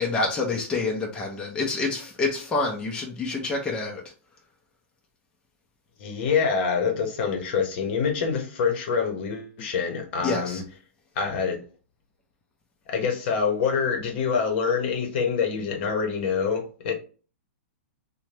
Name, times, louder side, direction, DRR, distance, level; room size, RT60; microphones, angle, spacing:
voice 1, 0.0-4.0 10.2-10.6, left 3 dB, 10° left, 0.5 m, -27 dB
voice 2, 6.0-10.6 11.2-11.6 12.9-16.9, left 6 dB, 50° left, 0.8 m, -26 dB
2.7 x 2.1 x 3.2 m
hypercardioid pair, 145°, 8 cm